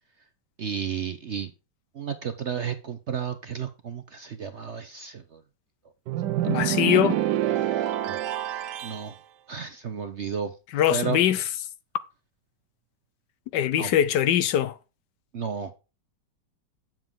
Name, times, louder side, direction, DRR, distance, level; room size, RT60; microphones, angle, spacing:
voice 1, 0.6-1.5 2.0-5.4 8.1-8.2 8.8-9.1 9.5-10.5 10.9-11.2 13.8-13.9 15.3-15.7, right 7 dB, 55° right, 0.8 m, -32 dB
sound 1, 6.1-9.1, right 12 dB, 70° right, 1.2 m, -26 dB
voice 2, 6.5-7.2 10.7-11.4 13.5-14.7, left 11 dB, 75° left, 1.2 m, -22 dB
9.0 x 7.4 x 3.7 m
omnidirectional pair, 2.0 m